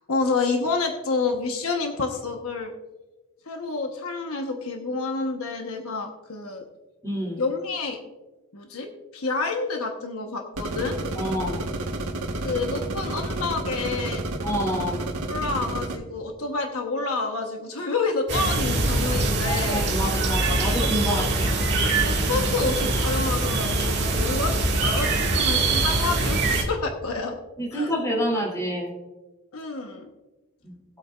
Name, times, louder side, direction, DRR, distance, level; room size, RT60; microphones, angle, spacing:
voice 1, 0.0-2.7 3.4-6.6 7.4-8.0 8.5-11.0 12.4-14.2 15.3-19.9 20.5-21.2 22.0-27.4 27.7-27.9 29.5-30.1, left 4 dB, 70° left, 3 dB, 1.1 m, -29 dB
voice 2, 7.0-7.4 11.1-11.6 14.4-15.0 19.4-21.5 25.3-25.4 27.6-28.9 30.6-30.7, equal, 15° left, -2 dB, 2.9 m, -28 dB
sound 1, 10.6-16.0, right 2 dB, 70° right, 1.4 m, -30 dB
sound 2, 18.3-26.6, right 2 dB, 50° right, 1.9 m, -23 dB
20.0 x 8.2 x 2.5 m, 1.1 s
head